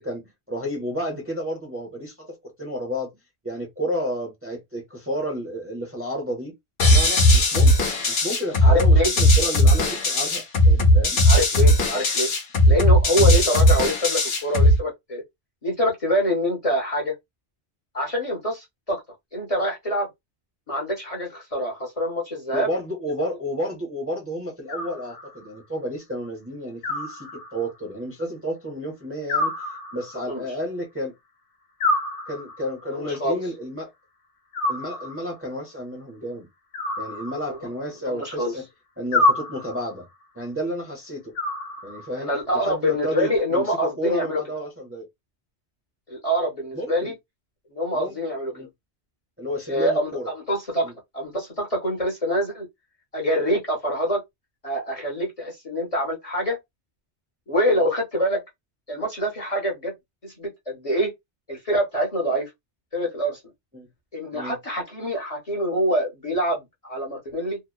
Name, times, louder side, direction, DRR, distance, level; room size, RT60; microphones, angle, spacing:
voice 1, 0.0-3.1 3.4-6.5 6.9-11.2 13.2-13.3 22.5-29.7 29.9-31.1 32.3-33.9 34.7-36.5 37.0-38.6 39.0-40.1 40.3-41.3 41.8-45.1 46.7-47.1 47.9-48.2 48.5-48.7 49.4-50.3 50.8-50.9 57.7-57.8 63.7-63.9 64.3-64.6, equal, 15° right, 0.6 m, -31 dB
sound 1, 6.8-14.8, left 1 dB, 65° left, 1.0 m, -17 dB
voice 2, 8.6-9.1 11.3-12.3 12.7-15.2 15.6-17.1 17.9-19.0 19.3-20.1 20.7-22.7 30.3-30.4 32.9-33.4 37.5-37.6 38.0-38.5 42.2-44.4 46.1-47.1 47.7-48.7 49.7-52.7 53.1-54.2 54.6-56.6 57.5-58.4 58.9-59.9 60.2-61.1 61.5-62.5 62.9-63.4 64.1-67.6, equal, 35° left, 0.7 m, -25 dB
Animal, 24.7-25.6 26.8-27.8 29.3-30.4 31.8-32.8 34.5-35.4 36.7-37.8 39.1-40.0 41.3-42.3, left 2 dB, 90° left, 0.9 m, -27 dB
2.8 x 2.0 x 2.2 m
omnidirectional pair, 1.2 m